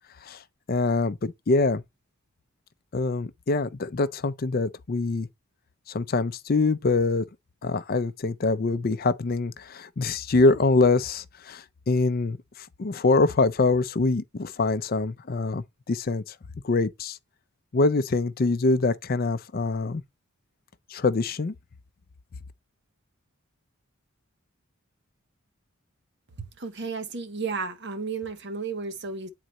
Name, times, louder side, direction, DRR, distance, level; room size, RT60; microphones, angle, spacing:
voice 1, 0.7-1.8 2.9-5.3 5.9-7.2 7.6-16.3 16.6-17.2 17.7-20.0 20.9-21.5, left 3 dB, 40° left, 0.4 m, -24 dB
voice 2, 26.6-29.3, right 4 dB, 50° right, 1.0 m, -33 dB
8.9 x 3.9 x 3.0 m
head